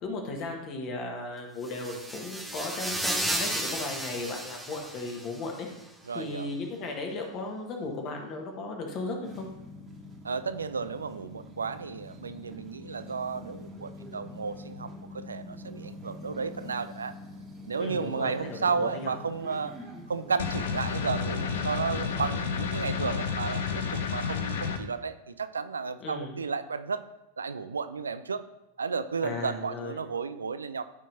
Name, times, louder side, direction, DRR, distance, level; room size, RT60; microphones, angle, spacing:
voice 1, 0.0-5.7 6.1-9.5 17.8-19.1 26.0-26.4 29.2-30.0, left 2 dB, 35° left, 2 dB, 1.5 m, -36 dB
sound 1, 1.6-5.5, right 1 dB, ahead, 0.8 m, -33 dB
voice 2, 6.1-6.5 10.2-17.1 17.7-19.7 20.1-27.1 27.4-28.4 28.8-30.8, right 5 dB, 75° right, 12 dB, 0.3 m, -33 dB
sound 2, 9.2-23.1, left 1 dB, 25° right, 1.6 m, -45 dB
sound 3, 20.4-24.8, left 6 dB, 60° left, 0.6 m, -30 dB
13.0 x 4.4 x 2.7 m, 0.91 s
figure-of-eight pair, 90°, 0 cm